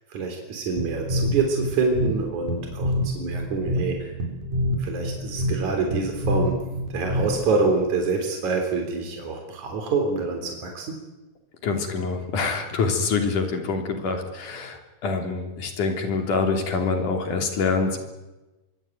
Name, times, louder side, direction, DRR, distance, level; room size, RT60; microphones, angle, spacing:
voice 1, 0.1-4.1 4.8-6.6 6.9-11.0, right 4 dB, 70° right, 3 dB, 4.9 m, -26 dB
sound 1, 0.8-7.6, equal, 85° right, 5.7 m, -27 dB
voice 2, 11.6-18.0, left 4 dB, 80° left, 4 dB, 4.9 m, -25 dB
25.0 x 23.0 x 9.3 m, 1.1 s
omnidirectional pair, 3.5 m